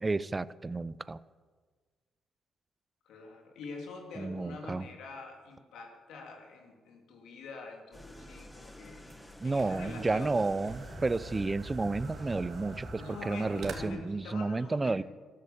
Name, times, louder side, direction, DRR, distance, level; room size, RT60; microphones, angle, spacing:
voice 1, 0.0-1.2 4.2-4.9 9.4-15.0, right 3 dB, 25° right, 18 dB, 0.5 m, -31 dB
voice 2, 3.0-9.1 9.4-10.4 13.0-15.0, left 3 dB, 80° left, 2 dB, 3.0 m, -45 dB
sound 1, 7.9-12.9, left 1 dB, 10° left, 1.5 m, -47 dB
sound 2, 8.1-13.7, right 4 dB, 75° right, 2.1 m, -46 dB
13.0 x 12.5 x 7.3 m, 1.5 s
cardioid pair, 90°, 0 cm